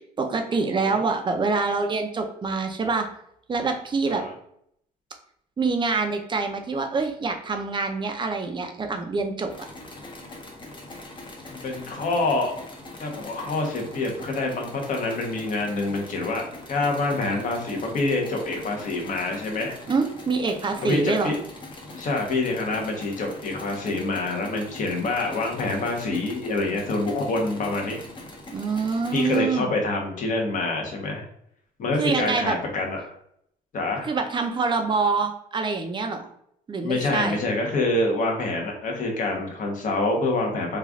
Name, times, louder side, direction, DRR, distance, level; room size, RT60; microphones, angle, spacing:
voice 1, 0.2-3.1 3.5-4.2 5.6-9.5 19.9-21.3 28.5-29.7 32.0-32.6 34.0-36.3 36.7-37.4, right 4 dB, 30° right, 5 dB, 0.6 m, -25 dB
sound 1, 9.5-29.4, left 2 dB, 30° left, 0.8 m, -42 dB
voice 2, 11.5-12.5 13.0-19.8 20.8-21.4 21.9-28.0 29.1-31.2 31.8-33.0 33.7-34.1 36.8-40.8, left 2 dB, 50° left, 1 dB, 1.1 m, -26 dB
3.2 x 2.4 x 3.6 m, 0.71 s
cardioid pair, 110°, 17 cm